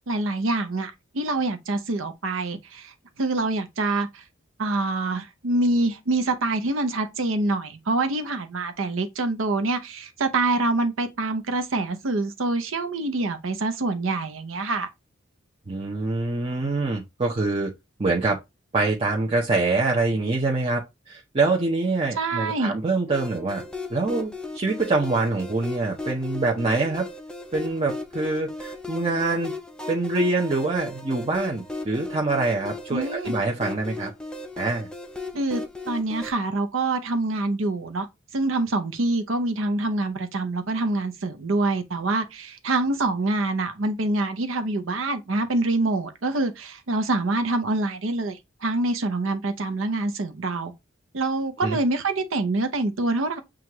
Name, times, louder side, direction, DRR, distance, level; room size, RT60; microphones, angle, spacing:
voice 1, 0.0-4.2 4.6-14.9 22.2-22.7 32.9-33.3 35.3-38.1 38.3-50.7 51.1-53.4, right 2 dB, 85° right, 0.7 m, -26 dB
voice 2, 15.7-17.7 18.0-18.4 18.7-23.6 23.9-27.0 27.5-29.5 29.9-34.1 34.6-34.9 51.6-51.8, right 3 dB, 30° right, 0.7 m, -25 dB
sound 1, 23.1-36.3, left 3 dB, 5° left, 0.5 m, -36 dB
6.2 x 2.4 x 2.9 m
head